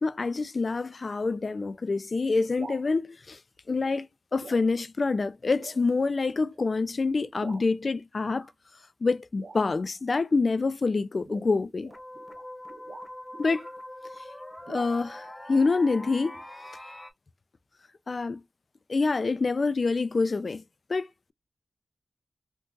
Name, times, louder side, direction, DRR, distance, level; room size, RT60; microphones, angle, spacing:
voice 1, 0.0-3.4 3.7-8.5 9.0-11.9 13.4-13.7 14.7-16.4 18.1-18.4 18.9-20.6 20.9-21.3, left 3 dB, 55° left, 0.3 m, -26 dB
sound 1, 2.6-2.9 3.8-4.1 4.4-4.7 5.0-5.1 5.6-5.8 6.5-6.7 7.4-7.7 8.2-8.5 9.4-9.9 11.2-13.8 14.7-14.9, right 3 dB, 70° right, 0.6 m, -46 dB
sound 2, 11.3-11.4 11.9-17.1, left 1 dB, 20° left, 0.8 m, -43 dB
2.6 x 2.4 x 3.5 m
cardioid pair, 40°, 0 cm